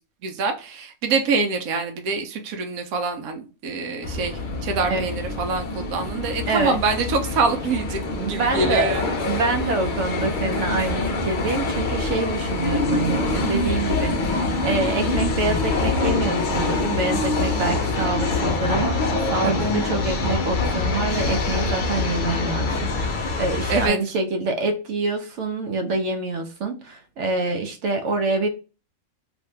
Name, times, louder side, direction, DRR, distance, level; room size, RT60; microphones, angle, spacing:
voice 1, 0.2-9.0 19.4-19.7 23.7-24.0, right 4 dB, 85° right, 1.1 m, -25 dB
sound 1, 4.0-23.9, left 3 dB, 60° left, 0.5 m, -25 dB
voice 2, 6.5-6.8 8.2-8.9 9.2-28.5, right 3 dB, 65° right, 0.8 m, -26 dB
2.7 x 2.5 x 3.2 m
omnidirectional pair, 1.5 m